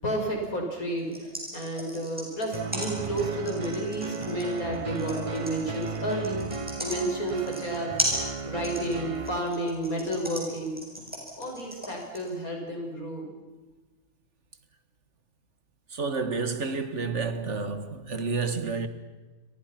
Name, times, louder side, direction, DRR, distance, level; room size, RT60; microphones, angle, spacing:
voice 1, 0.0-6.4 6.8-8.1 8.4-10.8 11.4-13.3, right 1 dB, 80° left, 6.7 m, -31 dB
sound 1, 1.0-12.3, equal, 5° right, 7.4 m, -35 dB
sound 2, 2.5-9.4, right 4 dB, 25° right, 0.8 m, -35 dB
voice 2, 15.9-18.9, right 4 dB, 55° right, 1.8 m, -30 dB
30.0 x 24.0 x 5.9 m
omnidirectional pair, 1.5 m